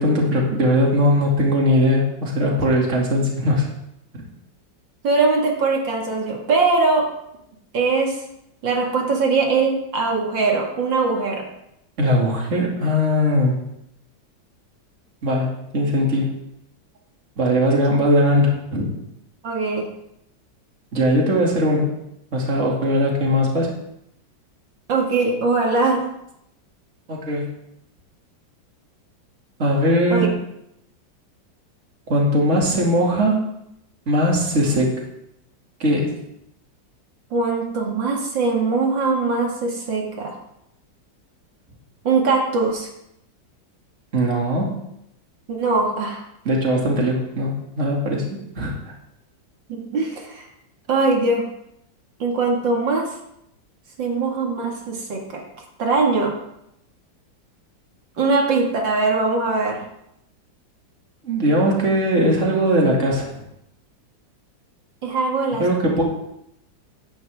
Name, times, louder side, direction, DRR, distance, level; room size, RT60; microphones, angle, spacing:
voice 1, 0.0-3.7 4.1-4.2 12.0-13.5 15.2-16.3 17.4-18.9 20.9-21.9 22.3-23.7 27.1-27.5 29.6-30.3 32.1-33.4 34.1-35.0 35.8-36.1 44.1-44.7 46.4-48.3 48.6-48.7 61.2-63.4 65.6-66.0, equal, 40° right, -1 dB, 2.7 m, -19 dB
voice 2, 5.0-7.1 7.7-8.2 8.6-11.5 19.4-19.8 24.9-26.0 30.1-30.3 37.3-40.3 42.0-42.9 45.5-46.2 49.7-50.5 50.9-51.4 52.2-53.1 54.0-55.4 55.8-56.3 58.2-59.8 65.0-65.6, right 3 dB, 75° right, 0 dB, 2.6 m, -21 dB
16.5 x 11.0 x 3.6 m, 0.79 s
omnidirectional pair, 2.0 m